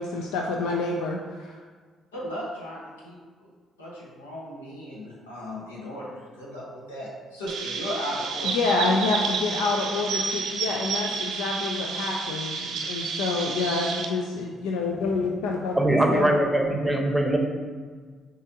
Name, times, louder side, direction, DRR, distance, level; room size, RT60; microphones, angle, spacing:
voice 1, 0.0-1.6 8.4-15.8 16.1-16.3, left 3 dB, 75° left, 0 dB, 0.3 m, -27 dB
voice 2, 2.1-3.5 3.8-8.8 9.1-9.2 9.5-9.6, equal, 90° left, -6 dB, 0.9 m, -36 dB
Chirp tweet, 7.5-14.0, right 5 dB, 65° right, 0.5 m, -30 dB
voice 3, 15.7-17.4, right 1 dB, 5° right, 2 dB, 0.8 m, -22 dB
6.0 x 2.7 x 2.7 m, 1.5 s
hypercardioid pair, 45°, 0 cm